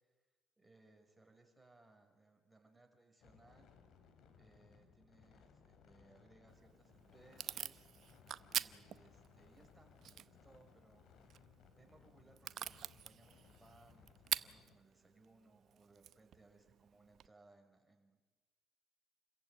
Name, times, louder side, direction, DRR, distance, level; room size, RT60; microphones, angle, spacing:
voice 1, 0.6-3.7 4.3-7.8 8.5-11.1 11.8-18.2, right 2 dB, 10° right, 3 dB, 5.7 m, -67 dB
sound 1, 3.2-14.8, left 6 dB, 65° left, 2.9 m, -65 dB
Packing tape duct tape / Tearing, 6.5-17.3, right 10 dB, 55° right, 0.7 m, -47 dB
28.5 x 15.0 x 9.2 m, 1.3 s
supercardioid pair, 70°, 0 cm